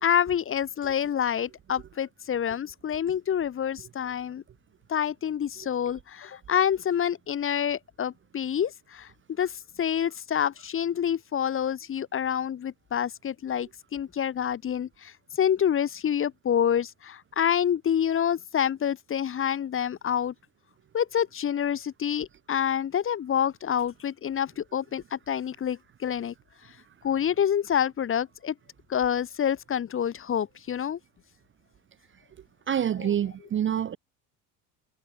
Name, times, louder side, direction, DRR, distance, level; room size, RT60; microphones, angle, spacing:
voice 1, 0.0-4.4 4.9-20.3 20.9-26.3 26.6-26.8 27.0-28.5 28.9-31.0 33.0-33.1, left 9 dB, 30° left, 0.9 m, -27 dB
voice 2, 32.7-34.0, right 9 dB, 25° right, 0.6 m, -27 dB
hypercardioid pair, 85°, 45 cm